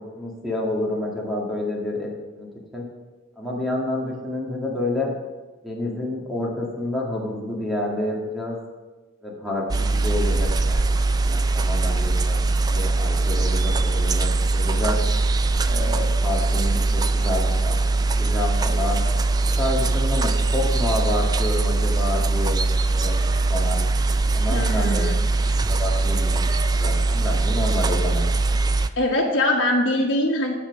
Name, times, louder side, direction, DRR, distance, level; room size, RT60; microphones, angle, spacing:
voice 1, 0.0-2.5 2.7-2.9 3.4-5.1 5.6-8.6 9.2-10.8 11.1-15.0 15.6-19.0 19.6-23.1 23.5-23.8 24.3-25.0 25.7-26.5 26.8-28.2, left 1 dB, ahead, -4 dB, 2.1 m, -29 dB
sound 1, 9.7-28.9, right 3 dB, 20° right, 0.3 m, -21 dB
voice 2, 24.5-25.2 28.9-30.5, left 1 dB, 75° left, -3 dB, 1.5 m, -22 dB
8.7 x 7.5 x 6.1 m, 1.2 s
head